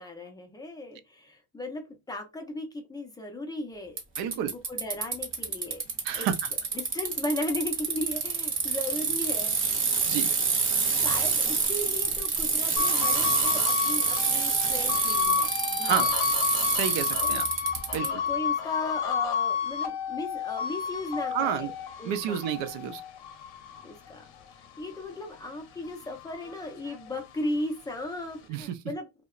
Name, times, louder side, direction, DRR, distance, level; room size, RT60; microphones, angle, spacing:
voice 1, 0.0-4.0 4.3-5.8 6.2-6.3 6.7-9.6 10.9-16.1 17.2-17.4 18.0-21.7 22.0-22.4 23.8-24.2 24.8-29.1, left 1 dB, 10° left, 0.3 m, -36 dB
Bicycle, 4.0-18.1, right 5 dB, 30° right, 0.6 m, -27 dB
voice 2, 4.2-4.5 6.0-6.5 10.1-10.3 15.8-16.1 16.7-17.5 17.9-18.2 21.3-21.7 22.1-23.0 28.5-28.8, right 9 dB, 70° right, 0.5 m, -30 dB
sound 1, 12.8-25.4 25.8-27.5, left 7 dB, 60° left, 0.6 m, -31 dB
2.7 x 2.1 x 2.3 m
cardioid pair, 155°, 46 cm